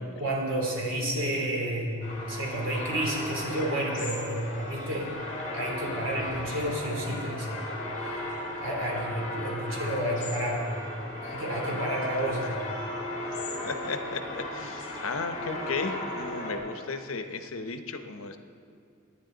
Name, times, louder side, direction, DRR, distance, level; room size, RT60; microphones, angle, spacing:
voice 1, 0.0-5.1 5.5-7.6 8.0-8.2 8.6-10.7 11.2-12.6, right 1 dB, 70° right, -2 dB, 3.2 m, -31 dB
sound 1, 2.0-16.6, left 1 dB, 40° left, 3.8 m, -36 dB
voice 2, 13.3-18.4, left 4 dB, 80° left, 7 dB, 0.9 m, -35 dB
24.0 x 9.9 x 3.9 m, 2.3 s
head